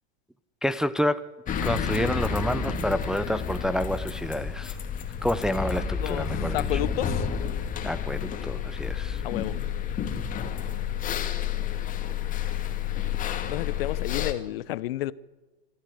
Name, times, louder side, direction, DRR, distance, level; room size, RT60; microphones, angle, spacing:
voice 1, 0.6-1.2 1.6-4.8 5.2-6.8 7.8-9.2, equal, ahead, 0.5 m, -28 dB
sound 1, 1.5-14.3, left 7 dB, 25° left, 2.2 m, -30 dB
voice 2, 6.5-7.1 9.2-9.5 13.5-15.1, left 15 dB, 60° left, 0.9 m, -30 dB
25.0 x 14.0 x 8.2 m
hypercardioid pair, 120°, 32 cm